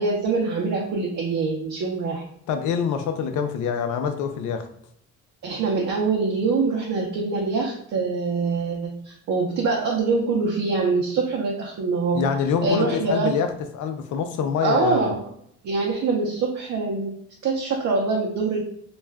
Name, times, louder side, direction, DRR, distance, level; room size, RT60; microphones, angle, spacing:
voice 1, 0.0-2.2 5.4-12.2 12.6-13.3 14.6-15.3 15.6-17.2 17.4-18.6, right 4 dB, 65° right, -2 dB, 0.7 m, -24 dB
voice 2, 2.5-4.7 12.1-15.1, left 7 dB, 80° left, 7 dB, 0.5 m, -25 dB
2.4 x 2.1 x 3.4 m, 0.67 s
cardioid pair, 90°, 30 cm